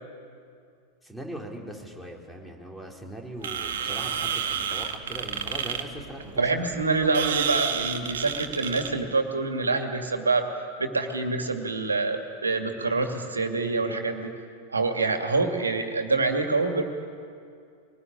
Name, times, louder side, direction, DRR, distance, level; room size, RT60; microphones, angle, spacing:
voice 1, 1.0-6.5, right 1 dB, ahead, 0 dB, 3.9 m, -40 dB
sound 1, 3.4-9.0, right 8 dB, 60° right, 1.7 m, -30 dB
voice 2, 6.4-10.5 10.8-14.3 14.7-16.8, right 3 dB, 75° right, 5 dB, 2.4 m, -26 dB
24.0 x 19.5 x 10.0 m, 2.3 s
figure-of-eight pair, 90°, 0 cm